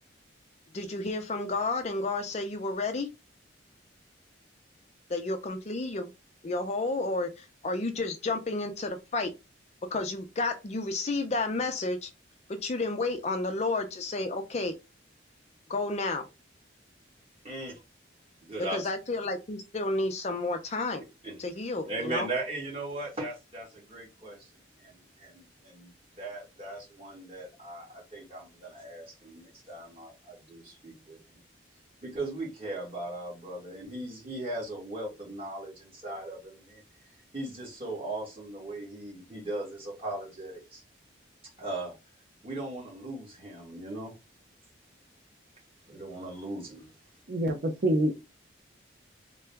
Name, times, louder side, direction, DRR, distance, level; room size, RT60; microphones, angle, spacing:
voice 1, 0.7-3.1 5.1-6.1 6.4-9.3 9.9-12.1 12.5-14.7 15.7-16.3 18.7-21.0 21.4-22.3, left 2 dB, 35° left, 0.4 m, -31 dB
voice 2, 17.4-17.8 18.4-18.9 21.2-21.4 21.8-24.5 24.8-25.9 26.2-31.2 32.0-36.8 37.3-40.8 41.6-41.9 42.4-44.1 45.9-46.9, right 2 dB, 30° right, 1.6 m, -38 dB
voice 3, 47.3-48.3, right 1 dB, 55° right, 0.5 m, -27 dB
3.7 x 2.2 x 3.3 m
head